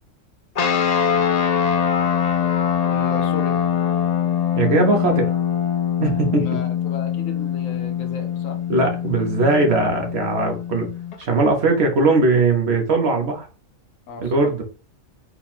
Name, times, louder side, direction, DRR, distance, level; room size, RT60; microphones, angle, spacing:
sound 1, 0.5-11.2, left 8 dB, 60° left, 0.4 m, -23 dB
voice 1, 2.9-3.6 6.3-8.6 14.1-14.4, left 5 dB, 80° left, 5 dB, 1.2 m, -35 dB
voice 2, 4.6-5.4 6.0-6.6 8.7-10.9 11.2-13.5 14.2-14.6, right 3 dB, 55° right, 3 dB, 1.1 m, -19 dB
4.2 x 2.3 x 4.2 m, 0.37 s
omnidirectional pair, 1.4 m